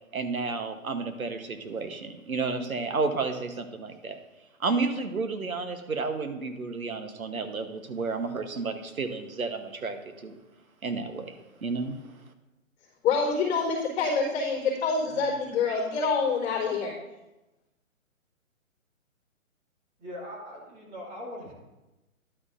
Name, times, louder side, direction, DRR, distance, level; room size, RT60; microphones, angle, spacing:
voice 1, 0.1-10.4 10.8-12.3, right 4 dB, 90° right, 7 dB, 1.2 m, -32 dB
voice 2, 13.0-16.9, left 4 dB, 20° left, -13 dB, 3.4 m, -26 dB
voice 3, 20.0-21.5, equal, 20° right, -4 dB, 2.2 m, -41 dB
11.5 x 8.4 x 2.6 m, 1.0 s
hypercardioid pair, 140°, 41 cm